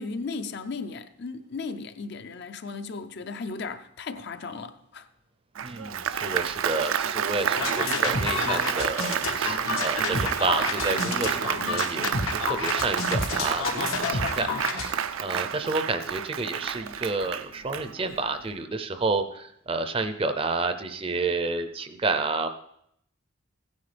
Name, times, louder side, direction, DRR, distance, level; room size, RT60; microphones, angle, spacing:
voice 1, 0.0-5.1, left 4 dB, 55° left, 0.5 m, -36 dB
voice 2, 5.6-22.5, right 3 dB, 25° right, 0.5 m, -30 dB
Applause, 5.6-18.3, right 8 dB, 80° right, 0.5 m, -30 dB
sound 1, 7.5-14.9, left 4 dB, 90° left, 1.4 m, -29 dB
16.0 x 9.7 x 3.4 m
head